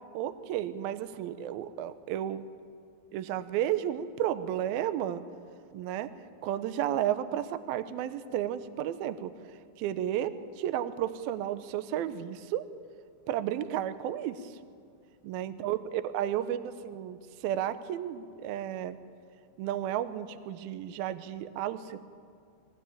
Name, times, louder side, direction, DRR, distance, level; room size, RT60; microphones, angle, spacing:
voice 1, 0.1-2.4 3.1-5.2 5.7-6.1 6.4-9.3 9.8-12.6 13.3-14.5 15.2-19.0 19.6-22.0, right 11 dB, 80° right, 12 dB, 2.1 m, -32 dB
22.5 x 18.5 x 8.8 m, 2.3 s
omnidirectional pair, 5.4 m